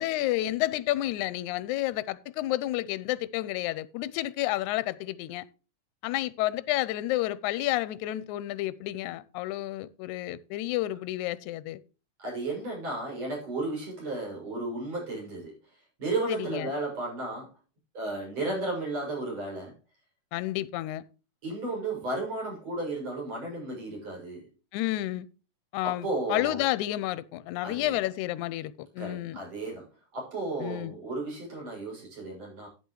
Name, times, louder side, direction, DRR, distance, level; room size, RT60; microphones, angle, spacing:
voice 1, 0.0-5.4 6.0-11.8 16.3-16.7 20.3-21.1 24.7-25.3 25.7-29.4 30.6-31.0, left 15 dB, 80° left, 2.0 m, -30 dB
voice 2, 12.2-15.6 16.0-17.5 17.9-19.7 21.4-24.5 25.8-26.7 27.6-28.0 29.0-32.7, right 2 dB, 55° right, 7.7 m, -34 dB
11.5 x 9.6 x 3.1 m
omnidirectional pair, 3.6 m